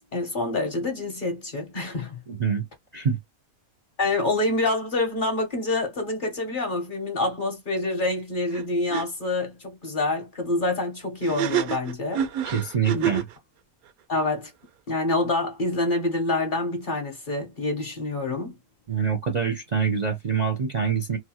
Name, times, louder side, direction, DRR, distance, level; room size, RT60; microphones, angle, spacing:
voice 1, 0.1-2.2 4.0-12.2 12.9-13.1 14.1-14.5 14.9-18.5, left 2 dB, 45° left, 0.9 m, -27 dB
voice 2, 2.3-2.6 2.9-3.2 12.5-13.3 18.9-21.2, right 6 dB, 45° right, 0.6 m, -25 dB
sound 1, 8.5-8.6 8.9-9.0 11.2-13.3, right 9 dB, 90° right, 1.1 m, -27 dB
2.9 x 2.2 x 2.8 m
omnidirectional pair, 1.5 m